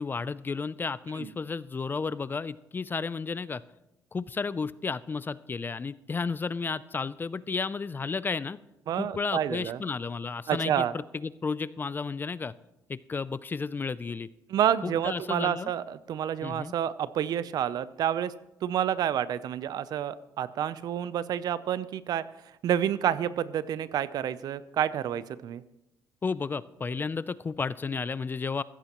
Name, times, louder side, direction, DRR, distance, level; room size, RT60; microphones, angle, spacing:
voice 1, 0.0-3.6 4.1-8.6 9.0-12.5 12.9-14.3 14.8-15.7 16.4-16.7 26.2-28.6, left 4 dB, 30° left, 18 dB, 0.4 m, -32 dB
voice 2, 8.9-9.8 10.5-10.9 14.5-18.3 18.6-22.3 22.6-25.6, right 10 dB, 65° right, 16 dB, 0.6 m, -29 dB
15.0 x 14.0 x 3.0 m, 0.90 s
cardioid pair, 80°, 7 cm